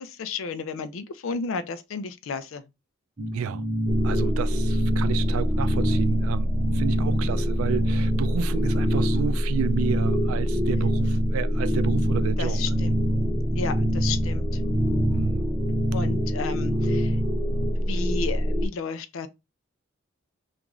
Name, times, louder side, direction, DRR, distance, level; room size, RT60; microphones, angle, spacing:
voice 1, 0.0-2.6 12.4-13.0 13.5-14.6 15.9-17.2 17.8-19.3, left 4 dB, 75° left, 0.4 m, -33 dB
sound 1, 3.2-17.7, equal, 30° right, 0.7 m, -28 dB
voice 2, 3.3-3.6 4.0-12.6 15.1-15.5, right 7 dB, 85° right, 0.3 m, -31 dB
sound 2, 3.9-18.7, equal, ahead, 0.3 m, -26 dB
3.0 x 2.5 x 3.5 m
head